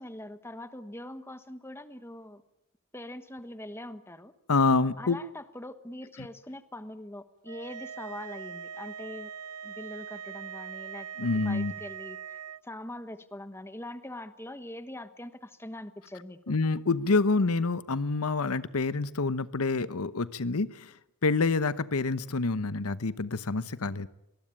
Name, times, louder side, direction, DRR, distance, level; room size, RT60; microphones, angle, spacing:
voice 1, 0.0-2.4 2.9-4.3 5.0-9.3 9.6-16.6, left 1 dB, 10° left, 11 dB, 1.2 m, -43 dB
voice 2, 4.5-5.2 11.2-11.7 16.5-20.9 21.2-24.1, left 3 dB, 75° left, 15 dB, 0.9 m, -27 dB
sound 1, 7.5-12.6, right 8 dB, 85° right, 0.9 m, -41 dB
25.0 x 20.5 x 8.8 m, 0.84 s
head